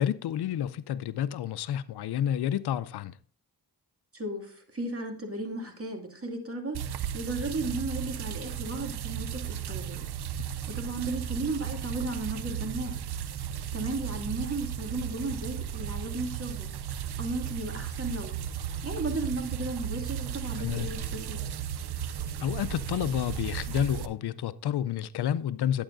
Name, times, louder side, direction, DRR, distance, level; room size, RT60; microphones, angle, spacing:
voice 1, 0.0-3.2 20.6-21.0 22.4-25.8, left 10 dB, 90° left, 0.5 m, -30 dB
voice 2, 4.1-10.1 10.4-13.0 13.7-18.4 18.8-21.5, right 2 dB, 35° right, 2.3 m, -35 dB
sound 1, 6.7-24.1, right 9 dB, 85° right, 0.7 m, -35 dB
11.5 x 8.7 x 2.6 m
cardioid pair, 50°, 38 cm